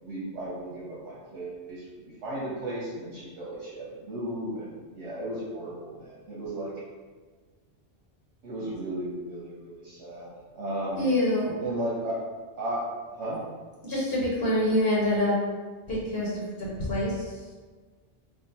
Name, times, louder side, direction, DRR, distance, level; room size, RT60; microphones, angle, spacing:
voice 1, 0.0-6.7 8.4-11.1 11.6-12.2 12.6-12.8 13.1-13.5, right 1 dB, 85° right, -7 dB, 1.1 m, -35 dB
voice 2, 11.0-11.5 13.8-15.4 15.9-17.1, left 1 dB, 60° left, -6 dB, 1.0 m, -26 dB
3.7 x 2.1 x 4.0 m, 1.4 s
omnidirectional pair, 1.2 m